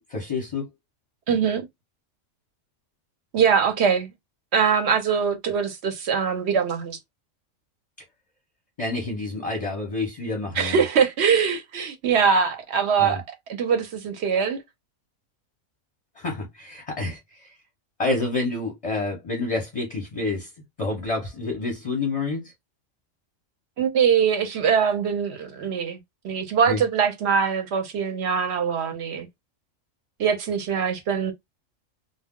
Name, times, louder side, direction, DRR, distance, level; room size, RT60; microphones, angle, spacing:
voice 1, 0.1-0.7 8.8-10.8 13.0-13.2 16.2-17.5 18.0-20.5 20.8-22.5 26.7-26.8, left 3 dB, 35° left, 0.6 m, -28 dB
voice 2, 1.3-1.7 3.3-4.1 4.5-7.0 10.6-13.2 13.5-14.6 23.8-26.0 26.2-29.3 30.2-31.3, right 6 dB, 65° right, 0.8 m, -22 dB
2.2 x 2.0 x 3.5 m
omnidirectional pair, 1.3 m